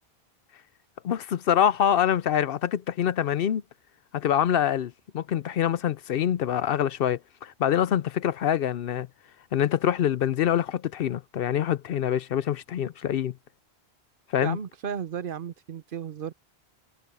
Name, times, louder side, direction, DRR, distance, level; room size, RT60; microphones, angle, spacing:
voice 1, 1.0-3.6 4.1-9.1 9.5-13.3 14.3-14.6, left 10 dB, 65° left, 0.7 m, -25 dB
voice 2, 14.4-16.3, right 7 dB, 60° right, 0.8 m, -34 dB
omnidirectional pair, 1.1 m